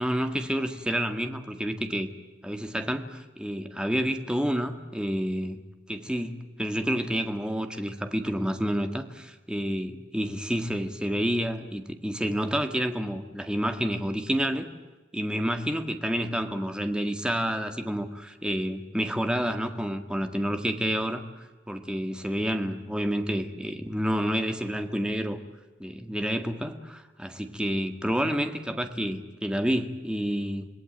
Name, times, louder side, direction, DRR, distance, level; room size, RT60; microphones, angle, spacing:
voice 1, 0.0-2.1 2.4-5.6 5.9-14.7 15.1-21.2 21.7-25.4 25.8-30.7, equal, 5° right, 6 dB, 1.9 m, -29 dB
27.0 x 19.5 x 9.2 m, 1.2 s
head